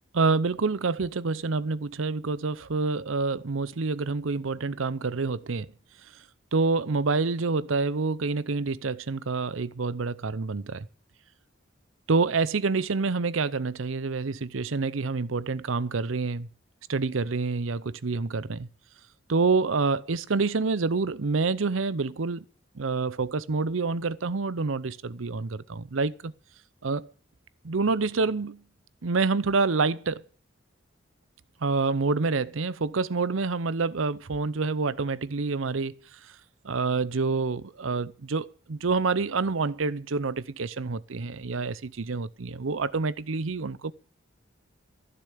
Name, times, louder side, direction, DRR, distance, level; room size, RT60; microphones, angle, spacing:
voice 1, 0.1-5.7 6.5-10.9 12.1-16.5 16.9-18.7 19.3-22.4 22.8-26.3 26.8-27.1 27.6-28.6 29.0-30.2 31.6-35.9 36.6-43.9, right 4 dB, 85° right, 0.7 m, -27 dB
15.0 x 7.0 x 8.5 m
head